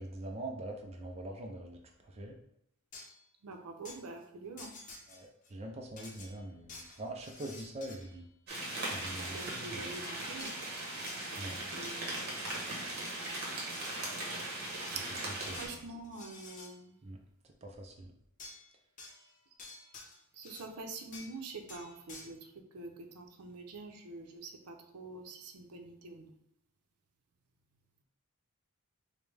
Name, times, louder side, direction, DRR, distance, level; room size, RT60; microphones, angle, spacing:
voice 1, 0.0-1.8 2.0-2.4 5.1-8.3 8.9-9.9 11.4-11.6 15.5-15.8 17.0-17.2 17.6-18.1, right 1 dB, 30° right, 1 dB, 0.4 m, -43 dB
sound 1, 2.9-3.3 3.8-4.0 4.6-5.5 6.0-8.2 10.4-11.2 12.5-12.7 13.1-14.1 14.6-15.1 15.5-16.8 18.4-18.7 19.0-20.7 21.1-21.4 21.7-22.3, left 3 dB, 35° left, 0.6 m, -51 dB
voice 2, 3.4-4.7 9.3-10.5 11.7-12.3 15.0-15.1 15.5-16.9 20.4-26.3, right 3 dB, 90° right, 3 dB, 0.6 m, -46 dB
sound 2, 8.5-15.7, right 1 dB, 45° right, 1.1 m, -39 dB
5.0 x 2.1 x 3.3 m, 0.77 s
head